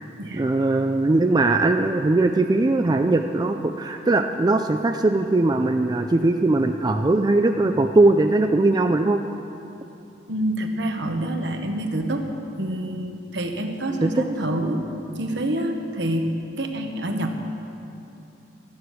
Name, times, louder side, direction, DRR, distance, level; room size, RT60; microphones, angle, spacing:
voice 1, 0.3-9.2 14.0-14.2, right 2 dB, 20° right, 5 dB, 0.4 m, -20 dB
voice 2, 10.3-12.2 12.6-14.8 15.2-16.3 16.6-17.4, right 1 dB, 70° right, 4 dB, 1.1 m, -27 dB
13.0 x 9.6 x 6.2 m, 2.8 s
head